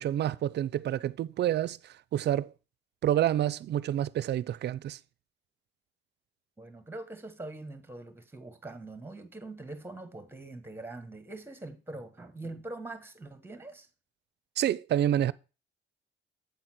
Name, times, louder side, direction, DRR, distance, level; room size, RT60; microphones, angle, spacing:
voice 1, 0.0-2.5 3.0-5.0 14.6-15.3, right 11 dB, 60° right, 0.5 m, -28 dB
voice 2, 6.6-13.9, right 2 dB, 10° right, 1.4 m, -43 dB
8.2 x 4.2 x 6.0 m
cardioid pair, 90°, 20 cm